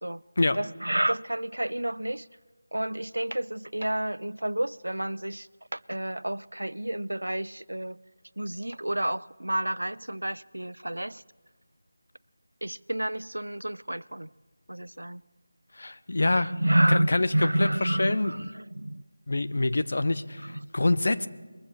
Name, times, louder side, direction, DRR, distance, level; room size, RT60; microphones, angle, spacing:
voice 1, 0.6-2.3 2.7-8.0 8.4-11.2 12.6-14.3 14.7-15.2 16.3-19.0 20.4-20.6, right 1 dB, 85° right, 0.3 m, -29 dB
voice 2, 15.7-16.5 16.9-18.3 19.3-21.3, left 2 dB, 55° left, 0.5 m, -26 dB
21.5 x 15.0 x 3.2 m
figure-of-eight pair, 165°, 0 cm